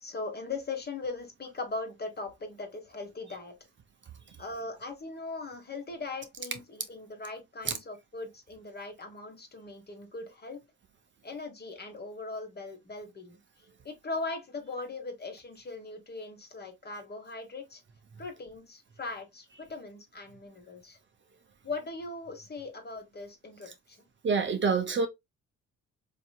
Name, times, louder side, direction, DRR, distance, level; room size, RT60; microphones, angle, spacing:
voice 1, 0.0-3.6 4.4-10.6 11.2-17.8 18.2-21.0 21.6-24.0, left 3 dB, 35° left, 1.2 m, -40 dB
voice 2, 24.2-25.1, right 5 dB, 40° right, 0.7 m, -26 dB
4.1 x 2.9 x 2.2 m
cardioid pair, 90°, 30 cm